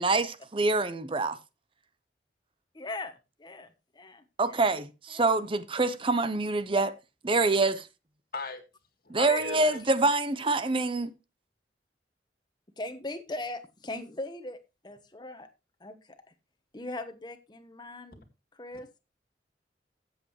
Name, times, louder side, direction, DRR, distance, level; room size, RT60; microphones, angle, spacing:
voice 1, 0.0-1.4 4.4-6.9 7.2-7.9 9.1-11.1, right 3 dB, 30° right, 0.7 m, -26 dB
voice 2, 2.7-3.7 3.9-4.2 4.5-4.7 5.1-5.3 9.3-9.8 12.8-14.6 14.8-15.5 15.8-16.2 16.7-18.2 18.5-19.0, left 2 dB, 25° left, 1.2 m, -39 dB
voice 3, 8.3-8.6 9.0-9.8, left 3 dB, 55° left, 2.0 m, -37 dB
14.5 x 7.7 x 3.2 m
head